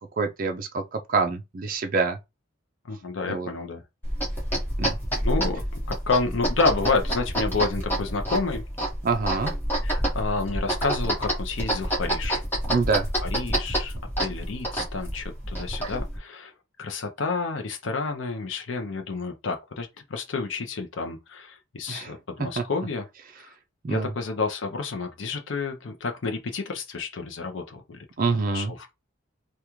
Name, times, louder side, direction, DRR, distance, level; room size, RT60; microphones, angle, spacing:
voice 1, 0.2-2.2 3.3-3.5 4.8-5.0 9.0-9.5 12.7-13.1 21.9-22.1 22.6-22.7 23.8-24.1 28.2-28.7, right 4 dB, 40° right, 0.4 m, -26 dB
voice 2, 2.9-3.8 5.2-8.6 9.8-12.4 13.2-16.5 16.8-23.0 23.4-23.5 23.9-28.0 28.5-28.9, left 4 dB, 65° left, 0.6 m, -30 dB
sound 1, 4.0-16.2, right 1 dB, 10° left, 1.3 m, -28 dB
3.5 x 2.3 x 3.0 m
head